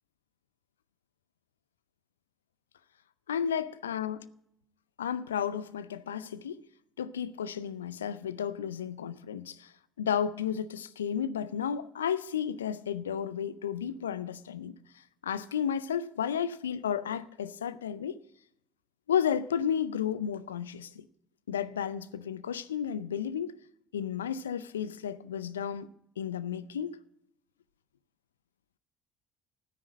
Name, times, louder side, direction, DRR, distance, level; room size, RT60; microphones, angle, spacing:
voice 1, 3.3-4.3 5.0-6.6 7.0-9.7 10.0-14.7 15.2-18.2 19.1-21.0 21.5-23.6 23.9-25.9 26.2-27.0, left 8 dB, 80° left, 0.4 m, -32 dB
13.0 x 9.7 x 5.2 m
figure-of-eight pair, 55°, 0 cm